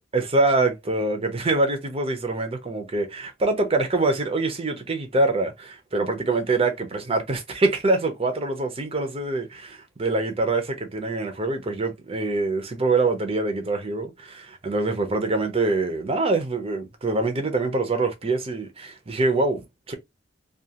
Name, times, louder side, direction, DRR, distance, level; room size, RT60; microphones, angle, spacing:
voice 1, 0.1-19.9, right 2 dB, 30° right, 0.7 m, -24 dB
2.4 x 2.4 x 2.7 m
head